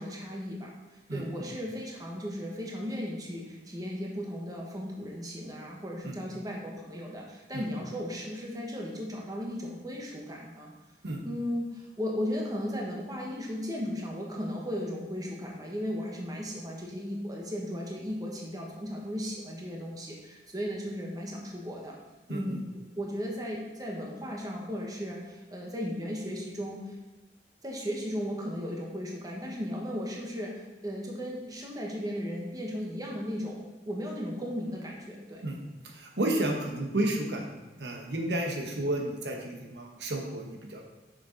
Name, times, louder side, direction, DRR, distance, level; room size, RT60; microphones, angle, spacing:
voice 1, 0.0-10.7 11.2-22.0 22.3-22.7 23.0-26.9 27.6-35.4, equal, 20° right, -2 dB, 1.2 m, -36 dB
voice 2, 22.3-22.6 35.4-35.6 35.8-40.8, right 1 dB, 70° right, 1 dB, 1.1 m, -32 dB
6.8 x 6.6 x 3.9 m, 1.2 s
head